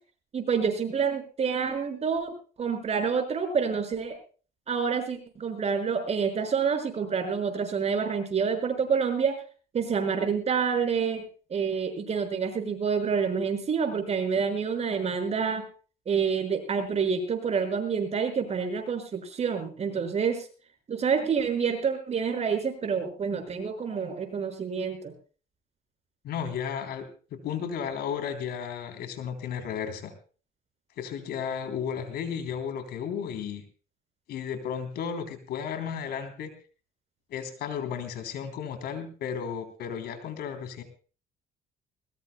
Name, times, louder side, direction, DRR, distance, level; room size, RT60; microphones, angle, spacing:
voice 1, 0.3-4.2 4.7-9.4 9.7-11.2 11.5-15.6 16.1-20.5 20.9-25.1, right 6 dB, 40° right, 5 dB, 5.8 m, -28 dB
voice 2, 26.2-30.1 31.0-33.6 34.3-36.5 37.3-40.8, left 7 dB, 70° left, 8 dB, 3.5 m, -34 dB
21.0 x 20.5 x 2.3 m, 0.39 s
cardioid pair, 110°, 17 cm